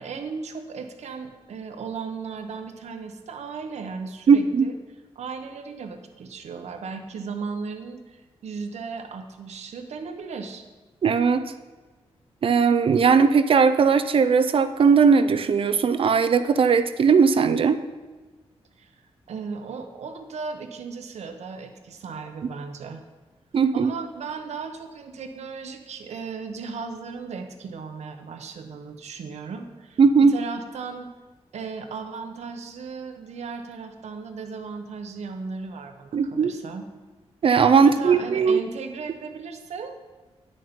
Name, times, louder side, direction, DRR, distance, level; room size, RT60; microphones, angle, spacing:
voice 1, 0.0-4.8 5.1-10.6 18.8-18.9 19.3-23.0 23.7-31.1 31.5-36.9 37.8-40.0, right 5 dB, 85° right, 6 dB, 1.0 m, -36 dB
voice 2, 4.3-4.7 11.0-11.5 12.4-17.8 23.5-23.9 30.0-30.3 36.1-36.5 37.4-38.6, right 5 dB, 55° right, 11 dB, 0.5 m, -18 dB
10.5 x 6.5 x 5.2 m, 1.2 s
wide cardioid pair, 140°, 11 cm